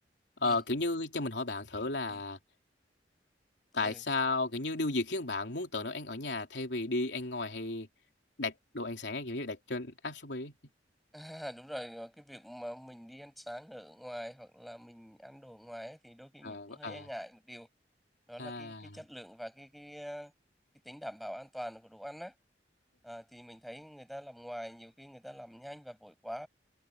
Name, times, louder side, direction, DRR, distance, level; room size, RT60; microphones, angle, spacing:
voice 1, 0.4-2.4 3.7-7.9 8.4-10.5 16.4-17.1 18.4-19.0, left 2 dB, 85° left, 3.2 m, -34 dB
voice 2, 11.1-17.7 18.3-20.3 20.8-22.3 23.0-26.5, equal, ahead, 7.3 m, -45 dB
head